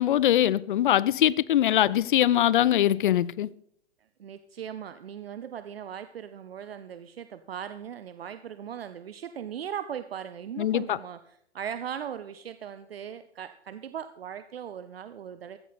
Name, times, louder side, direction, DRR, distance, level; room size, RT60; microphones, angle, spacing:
voice 1, 0.0-3.5 10.6-11.0, left 12 dB, 50° left, 0.6 m, -22 dB
voice 2, 4.2-15.6, right 9 dB, 60° right, 0.8 m, -39 dB
15.0 x 13.5 x 4.2 m
figure-of-eight pair, 110°, 33 cm